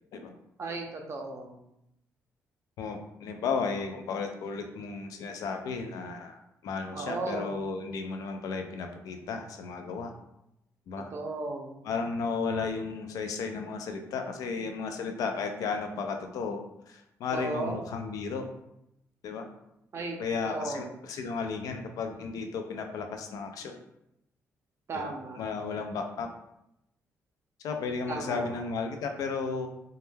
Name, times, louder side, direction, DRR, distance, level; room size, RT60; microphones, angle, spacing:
voice 1, 0.6-1.6 6.9-7.6 11.1-11.8 17.3-17.9 19.9-20.2 20.4-20.9 24.9-25.5 28.1-28.5, right 2 dB, 50° right, 2 dB, 0.5 m, -35 dB
voice 2, 2.8-10.1 10.9-11.1 11.8-16.6 16.9-18.5 19.2-19.5 20.2-23.8 24.9-26.3 27.6-29.7, left 5 dB, 80° left, 5 dB, 0.3 m, -34 dB
2.1 x 2.1 x 3.1 m, 0.82 s
cardioid pair, 85°, 6 cm